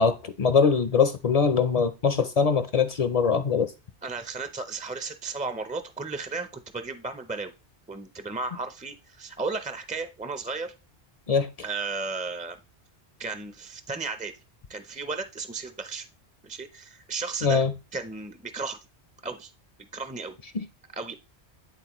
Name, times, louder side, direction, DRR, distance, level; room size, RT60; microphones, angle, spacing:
voice 1, 0.0-3.7 11.3-11.5 17.4-17.7, left 5 dB, 50° left, 0.5 m, -22 dB
voice 2, 4.0-7.5 7.9-10.7 11.6-12.6 13.2-14.4 14.7-16.1 16.4-17.6 17.9-18.8 19.2-19.5 19.9-20.3 20.9-21.1, right 4 dB, 15° right, 0.3 m, -34 dB
10.5 x 3.9 x 3.0 m
omnidirectional pair, 1.1 m